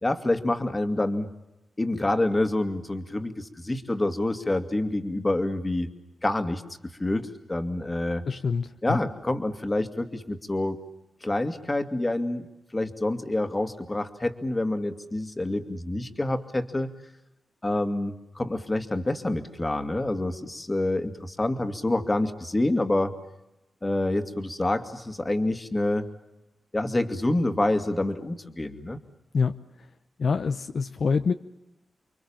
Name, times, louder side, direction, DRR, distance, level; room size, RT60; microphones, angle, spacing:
voice 1, 0.0-1.3 1.8-5.9 6.2-6.6 7.0-8.2 8.8-10.8 11.2-12.5 12.7-16.9 17.6-23.1 23.8-26.1 26.7-29.0, left 1 dB, 20° left, 8 dB, 2.3 m, -27 dB
voice 2, 8.3-9.0 29.3-29.6 30.2-31.3, left 5 dB, 60° left, 8 dB, 0.9 m, -26 dB
30.0 x 23.5 x 7.3 m, 0.94 s
wide cardioid pair, 100°, 0 cm